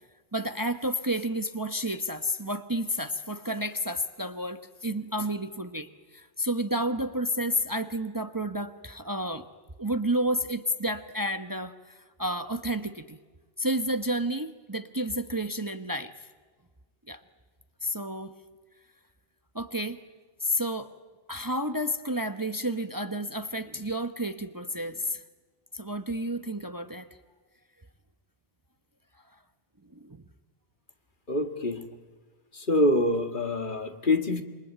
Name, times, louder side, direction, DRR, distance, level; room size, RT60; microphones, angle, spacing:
voice 1, 0.3-9.5 9.8-13.2 13.6-16.1 17.1-17.2 17.8-18.3 19.5-20.0 20.4-20.9 21.3-25.2 25.7-27.1 29.3-29.4 29.9-30.2, equal, 20° right, 9 dB, 1.0 m, -31 dB
voice 2, 31.3-31.9 32.5-34.4, left 1 dB, 55° left, 7 dB, 1.9 m, -25 dB
27.5 x 23.5 x 9.2 m, 1.4 s
omnidirectional pair, 1.0 m